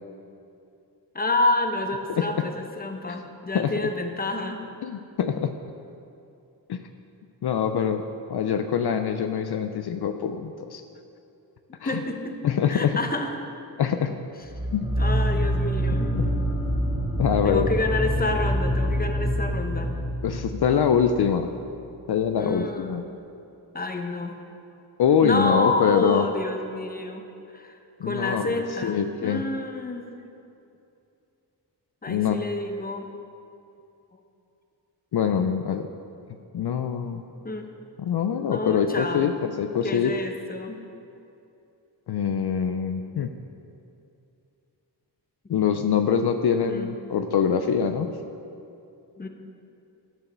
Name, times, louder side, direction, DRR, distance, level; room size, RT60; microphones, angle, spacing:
voice 1, 1.1-4.6 11.8-12.4 12.7-13.3 15.0-16.1 17.4-19.9 22.4-23.0 23.7-24.4 25.2-27.3 27.5-30.1 32.0-33.1 37.4-37.7 38.5-39.3 39.8-40.8 46.7-46.9 49.1-49.3, left 2 dB, 20° left, 4 dB, 0.8 m, -28 dB
voice 2, 2.2-2.5 3.1-3.2 3.5-3.7 4.8-5.5 6.7-6.8 7.4-8.0 8.3-10.8 11.8-12.0 12.4-13.0 13.8-14.1 14.7-14.9 15.8-16.2 17.2-17.7 20.2-21.5 22.1-23.0 25.0-26.3 28.0-29.5 32.1-32.4 35.1-35.9 36.5-37.2 38.0-40.1 42.1-43.3 45.5-48.1, left 7 dB, 65° left, 7 dB, 0.5 m, -24 dB
sound 1, 14.5-21.8, equal, 15° right, 1.4 m, -26 dB
12.0 x 4.8 x 6.8 m, 2.7 s
wide cardioid pair, 105°, 42 cm